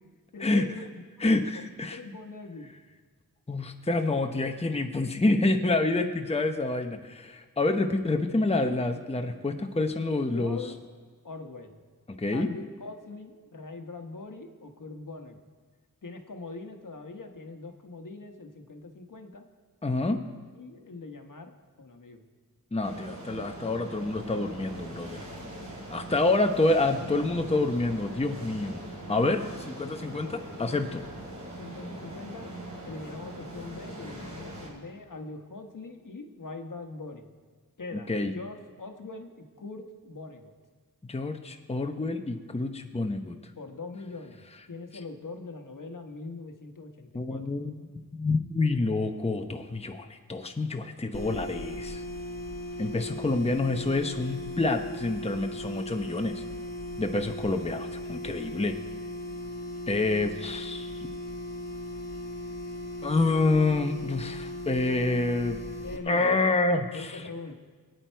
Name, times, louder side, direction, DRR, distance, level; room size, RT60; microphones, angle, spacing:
voice 1, 0.3-0.9 1.2-1.7 1.9-2.7 10.3-10.8 11.2-11.8 12.3-15.4 16.0-19.4 20.5-22.2 26.3-27.5 31.6-32.5 32.8-37.3 37.8-40.5 43.6-47.4 65.8-66.4 66.9-67.5, left 3 dB, 65° left, 5 dB, 1.4 m, -42 dB
voice 2, 1.2-2.0 3.5-10.6 12.2-12.5 19.8-20.2 22.7-25.2 25.9-28.8 29.1-31.0 38.1-38.4 41.1-43.4 47.1-47.8 48.2-52.0 52.8-56.4 57.0-58.8 59.9-60.9 63.0-65.6 66.1-67.2, left 2 dB, 20° left, 5 dB, 0.9 m, -27 dB
sound 1, 22.8-34.7, right 1 dB, 55° right, 4.9 m, -41 dB
sound 2, 51.1-66.0, left 1 dB, 45° left, 1.7 m, -37 dB
21.5 x 9.4 x 4.6 m, 1.5 s
wide cardioid pair, 70°, 34 cm